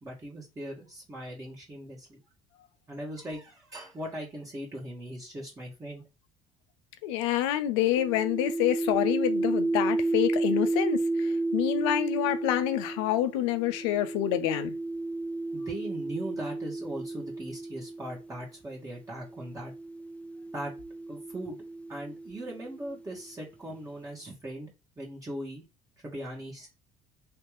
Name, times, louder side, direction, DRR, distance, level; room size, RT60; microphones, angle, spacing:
voice 1, 0.0-2.2 2.9-6.0 15.5-19.7 20.5-20.7 21.1-21.6 21.9-24.7 25.0-25.6 26.0-26.7, right 1 dB, 25° right, 1.7 m, -39 dB
voice 2, 7.0-14.7, left 12 dB, 80° left, 0.5 m, -27 dB
sound 1, 8.0-18.3 19.2-23.0, right 2 dB, 10° left, 0.4 m, -32 dB
3.3 x 2.9 x 3.2 m
hypercardioid pair, 70°, 14 cm